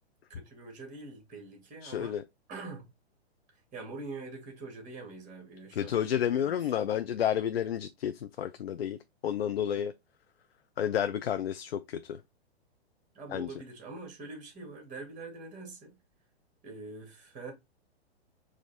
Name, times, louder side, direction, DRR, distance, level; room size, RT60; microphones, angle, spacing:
voice 1, 0.3-2.2 2.5-2.9 3.7-6.6 13.1-16.0 16.6-17.5, right 3 dB, 25° right, 2.1 m, -44 dB
voice 2, 1.8-2.2 5.7-9.9 10.8-12.2 13.3-13.5, left 9 dB, 65° left, 0.5 m, -31 dB
4.9 x 2.5 x 4.2 m
figure-of-eight pair, 110°, 33 cm